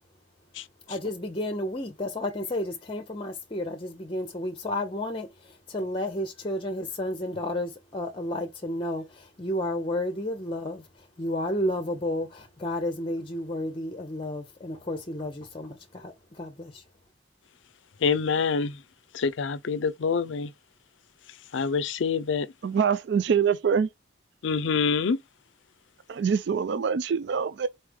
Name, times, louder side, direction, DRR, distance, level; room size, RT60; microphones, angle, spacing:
voice 1, 0.9-10.9 11.2-16.8, left 1 dB, 25° left, 0.6 m, -32 dB
voice 2, 18.0-18.8 19.1-20.5 21.5-22.5 24.4-25.2, left 5 dB, 75° left, 0.5 m, -26 dB
voice 3, 22.6-23.9 26.1-27.7, right 6 dB, 60° right, 0.3 m, -24 dB
4.2 x 3.2 x 3.4 m
head